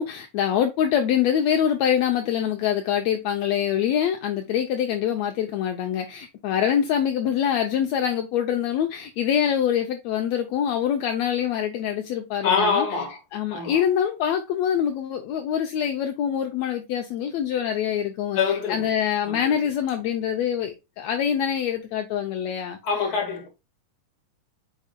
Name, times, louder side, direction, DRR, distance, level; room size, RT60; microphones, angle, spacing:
voice 1, 0.0-12.9 13.3-18.4 18.7-22.8, left 9 dB, 80° left, 1.5 m, -24 dB
voice 2, 12.4-13.2 13.5-13.8 18.3-18.9 19.3-19.6 22.8-23.5, left 5 dB, 35° left, 1.8 m, -25 dB
8.6 x 5.3 x 2.2 m
omnidirectional pair, 3.9 m